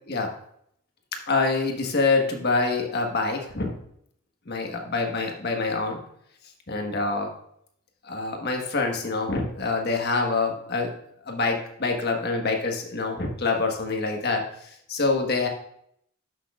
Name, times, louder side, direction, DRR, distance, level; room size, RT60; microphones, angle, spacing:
voice 1, 1.3-3.7 4.5-6.0 6.7-7.3 8.0-10.9 11.2-14.4 14.9-15.5, left 3 dB, 50° left, 2 dB, 1.4 m, -26 dB
11.5 x 6.2 x 2.4 m, 0.69 s
head